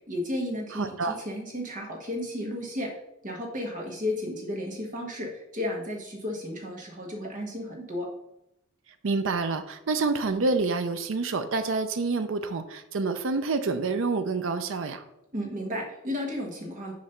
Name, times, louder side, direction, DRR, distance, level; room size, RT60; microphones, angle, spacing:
voice 1, 0.1-2.9 3.2-8.1 15.3-16.9, left 1 dB, 40° right, 0 dB, 1.5 m, -33 dB
voice 2, 0.7-1.1 9.0-15.0, right 3 dB, 65° right, 9 dB, 0.5 m, -27 dB
6.6 x 3.1 x 5.7 m, 0.84 s
head